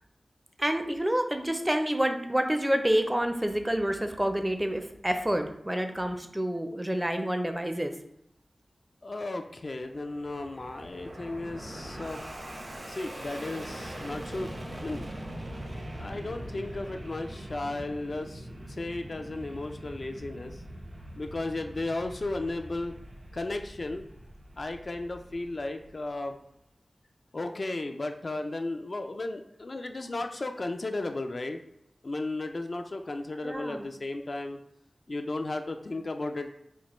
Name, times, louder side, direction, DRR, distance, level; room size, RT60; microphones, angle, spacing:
voice 1, 0.6-7.9 33.4-33.9, right 1 dB, 15° right, 6 dB, 0.4 m, -28 dB
voice 2, 9.0-12.2 12.9-15.0 16.0-18.5 18.8-20.6 21.2-23.0 23.3-24.1 24.6-26.4 27.3-31.6 32.0-34.6 35.1-36.5, left 2 dB, 55° left, 5 dB, 0.3 m, -34 dB
Fixed-wing aircraft airplane, 9.6-26.2, right 1 dB, 60° right, 0.7 m, -42 dB
4.3 x 2.1 x 3.0 m, 0.78 s
wide cardioid pair, 60°, 0 cm